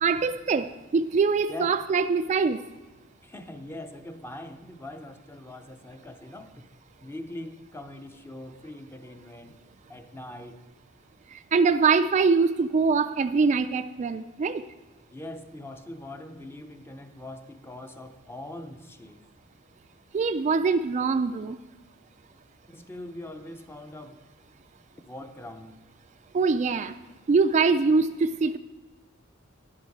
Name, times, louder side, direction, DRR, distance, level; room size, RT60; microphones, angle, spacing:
voice 1, 0.0-2.6 11.3-14.6 20.1-21.6 26.3-26.9 27.3-28.6, right 4 dB, 35° right, 0.3 m, -23 dB
voice 2, 3.2-6.7 7.0-9.6 9.9-10.6 15.1-19.3 22.7-24.2 25.1-25.8, left 1 dB, 10° left, 0.6 m, -42 dB
10.5 x 9.7 x 4.7 m
head